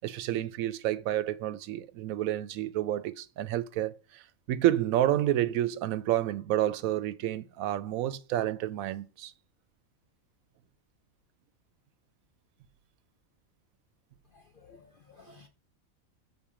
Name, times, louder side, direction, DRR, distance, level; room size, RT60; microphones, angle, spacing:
voice 1, 0.0-4.2 4.5-9.3, right 13 dB, 85° right, 1.0 m, -29 dB
voice 2, 14.3-15.5, left 5 dB, 50° left, 0.8 m, -56 dB
7.1 x 4.0 x 4.8 m
omnidirectional pair, 1.4 m